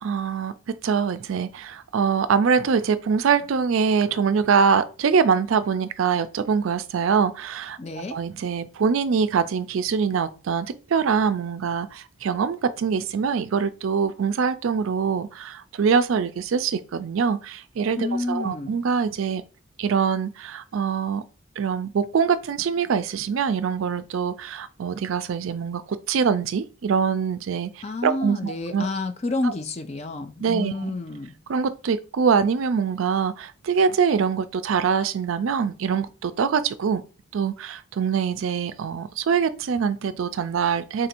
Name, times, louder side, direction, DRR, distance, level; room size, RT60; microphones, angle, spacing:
voice 1, 0.0-19.4 19.8-21.2 21.6-28.9 29.4-29.5 30.4-30.9 31.5-37.0 37.3-41.1, right 6 dB, 75° right, 0.4 m, -24 dB
voice 2, 7.8-8.2 18.0-18.8 27.8-31.3, left 2 dB, 30° left, 0.4 m, -29 dB
3.7 x 2.5 x 4.3 m
head